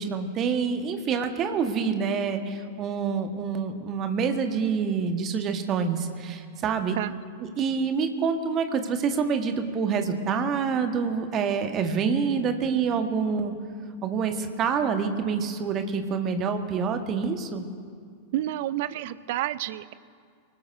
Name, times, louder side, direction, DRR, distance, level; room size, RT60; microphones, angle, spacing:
voice 1, 0.0-7.0 7.4-13.5 14.0-17.7, right 6 dB, 30° right, 6 dB, 1.4 m, -27 dB
voice 2, 18.3-19.9, right 14 dB, 50° right, 16 dB, 0.5 m, -29 dB
24.5 x 19.5 x 2.7 m, 2.1 s
figure-of-eight pair, 90°, 0 cm